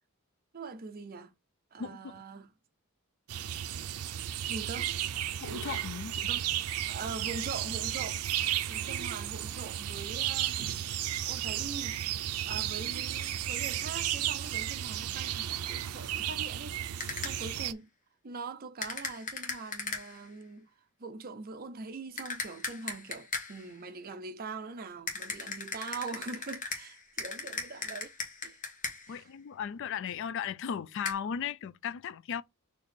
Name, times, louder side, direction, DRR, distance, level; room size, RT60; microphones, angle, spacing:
voice 1, 0.5-1.3 1.7-2.5 4.5-4.9 6.3-6.5 6.9-8.2 8.7-10.7 11.3-12.0 12.4-17.9 18.2-20.7 21.0-28.1 28.4-28.6 29.1-29.3, right 4 dB, 40° right, 0.5 m, -42 dB
voice 2, 1.8-2.2 5.4-6.3 29.1-32.4, left 7 dB, 55° left, 0.3 m, -36 dB
sound 1, 3.3-17.7, right 11 dB, 90° right, 0.4 m, -34 dB
sound 2, 17.0-17.6 18.8-20.3 22.2-23.7 25.1-29.2 31.1-31.2, left 4 dB, 35° left, 1.1 m, -38 dB
4.4 x 2.9 x 4.2 m
head